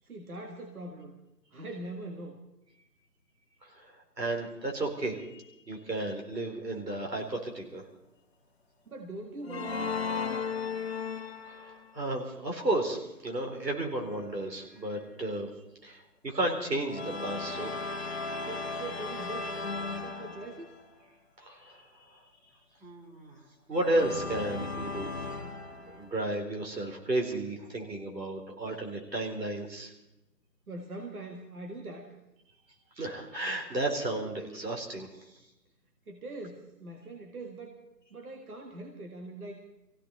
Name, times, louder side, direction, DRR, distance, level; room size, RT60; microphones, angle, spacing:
voice 1, 0.0-1.2 1.5-2.4 8.9-9.9 18.3-20.7 30.7-32.1 36.1-37.8 38.1-39.7, right 2 dB, 60° right, 2 dB, 2.0 m, -42 dB
voice 2, 3.6-7.8 11.5-15.5 15.8-17.7 21.4-22.2 22.8-23.3 23.7-25.1 25.9-29.9 33.0-35.1, right 2 dB, 80° right, 1 dB, 4.5 m, -33 dB
sound 1, 9.4-11.9 16.9-20.9 23.7-26.2, left 4 dB, 40° left, 1.3 m, -36 dB
21.5 x 16.0 x 4.1 m, 0.91 s
figure-of-eight pair, 170°, 49 cm